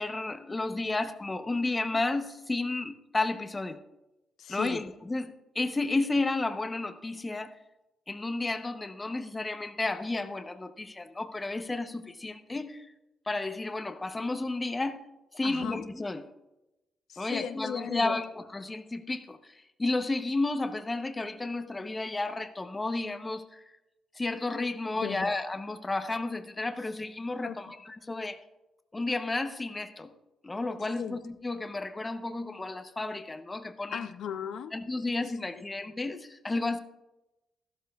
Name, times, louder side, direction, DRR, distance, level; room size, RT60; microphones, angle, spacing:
voice 1, 0.0-3.8 4.5-7.6 8.1-12.9 13.3-15.0 15.3-16.2 17.2-19.5 19.8-23.6 24.1-28.4 28.9-30.1 30.4-34.1 34.7-36.8, left 2 dB, 20° left, 9 dB, 0.8 m, -32 dB
voice 2, 4.4-4.8 15.4-15.8 17.1-18.2 25.0-25.3 27.4-27.6 31.0-31.2 33.9-34.7, left 8 dB, 80° left, 10 dB, 0.6 m, -36 dB
13.5 x 12.5 x 2.4 m, 0.97 s
cardioid pair, 115°, 0 cm